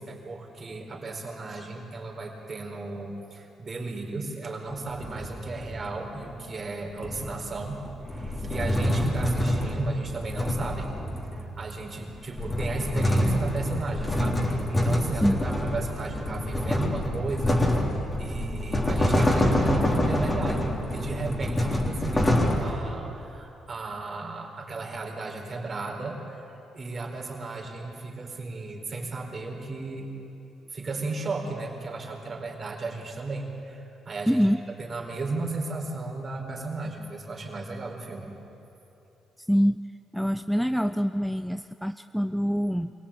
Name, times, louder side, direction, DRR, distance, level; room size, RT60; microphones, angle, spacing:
voice 1, 0.0-10.9 11.3-30.1 30.7-34.5 34.8-38.3, right 3 dB, 40° right, 0 dB, 4.5 m, -35 dB
sound 1, 4.7-6.0 7.0-11.6 12.1-22.6, left 1 dB, 20° left, 3.5 m, -26 dB
voice 2, 34.3-34.6 39.4-39.8 40.1-42.9, equal, ahead, 10 dB, 0.5 m, -25 dB
25.0 x 17.5 x 8.7 m, 2.9 s
cardioid pair, 90°, 0 cm